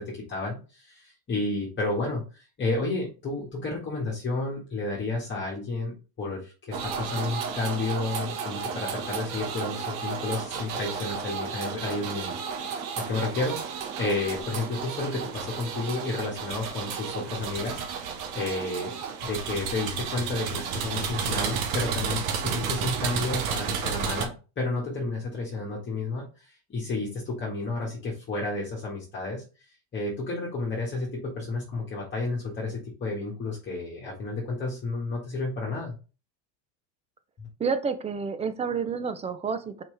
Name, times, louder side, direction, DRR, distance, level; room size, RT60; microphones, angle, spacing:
voice 1, 0.0-13.6 14.0-17.8 18.3-19.0 19.2-29.4 29.9-36.0 37.4-37.5, left 3 dB, 25° left, -4 dB, 1.8 m, -31 dB
sound 1, 6.7-24.3, right 6 dB, 65° right, 1.6 m, -32 dB
voice 2, 37.6-39.8, right 5 dB, 15° right, 10 dB, 0.4 m, -29 dB
5.9 x 4.9 x 3.4 m, 0.33 s
supercardioid pair, 140°, 47 cm